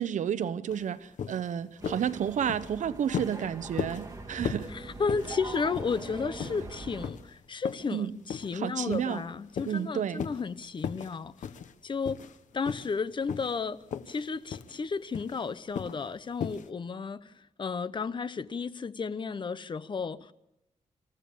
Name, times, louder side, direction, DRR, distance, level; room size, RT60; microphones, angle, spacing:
voice 1, 0.0-4.7 7.9-8.2 8.5-9.2 9.6-10.2, right 9 dB, 80° right, 0.9 m, -31 dB
sound 1, 0.7-0.8 1.2-1.5 1.8-2.1 2.4-2.7 3.1-3.4 3.8-4.1 4.5-4.7 5.1-5.4 5.8-6.1 6.4-6.6 7.0-7.2 7.7-7.9 8.3-8.5 8.9-9.2 9.6-9.8 10.2-10.4 10.8-11.1 11.4-11.7 12.0-12.4 12.7-13.0 13.3-13.6 13.9-14.2 14.5-14.7 15.1-15.4 15.8-16.0 16.4-16.7, left 7 dB, 80° left, 1.0 m, -36 dB
sound 2, 1.8-7.1, right 2 dB, 25° right, 2.7 m, -42 dB
voice 2, 4.7-11.5 11.8-12.2 12.5-17.3 17.6-20.3, left 5 dB, 40° left, 0.8 m, -33 dB
26.5 x 15.0 x 7.1 m
wide cardioid pair, 120°, 13 cm